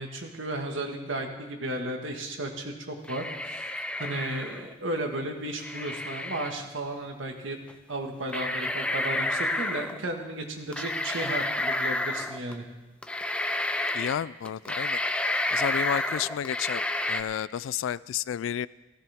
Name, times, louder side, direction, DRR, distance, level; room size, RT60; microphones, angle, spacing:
voice 1, 0.0-7.6 7.9-12.6, right 1 dB, 85° right, 3 dB, 1.7 m, -34 dB
sound 1, 3.0-4.7 5.6-6.5 7.7-7.8 8.3-10.0 10.7-12.5 13.0-14.2 14.5-17.2, left 2 dB, 5° left, 0.4 m, -30 dB
voice 2, 13.9-15.0 15.5-16.8 17.1-18.7, left 9 dB, 85° left, 20 dB, 0.3 m, -31 dB
15.5 x 15.0 x 3.5 m, 1.1 s
head